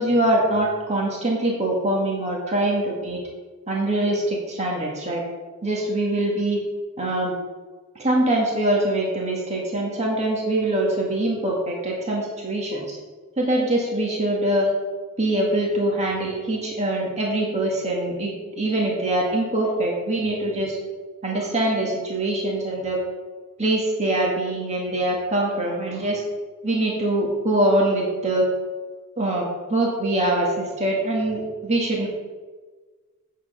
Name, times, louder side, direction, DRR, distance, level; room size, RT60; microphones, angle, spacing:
voice 1, 0.0-3.2 3.7-5.2 5.6-6.6 7.0-7.3 7.9-13.0 13.4-14.7 15.2-20.8 21.2-23.0 23.6-26.2 26.6-28.5 29.2-32.1, right 1 dB, 35° right, -2 dB, 1.8 m, -23 dB
8.8 x 7.4 x 5.7 m, 1.4 s
head